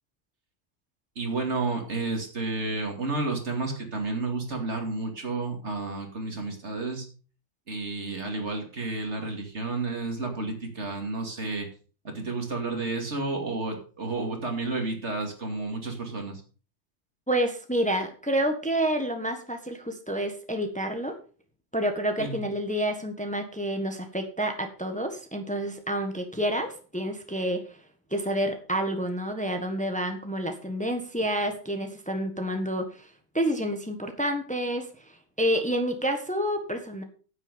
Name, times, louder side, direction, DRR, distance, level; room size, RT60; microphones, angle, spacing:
voice 1, 1.2-7.1 7.7-11.7 12.0-16.4 22.2-22.4, right 3 dB, 65° right, 3 dB, 2.8 m, -31 dB
voice 2, 17.3-21.1 21.7-27.8 28.1-37.0, right 1 dB, 5° left, 6 dB, 1.4 m, -29 dB
9.7 x 8.6 x 5.2 m, 0.38 s
omnidirectional pair, 1.2 m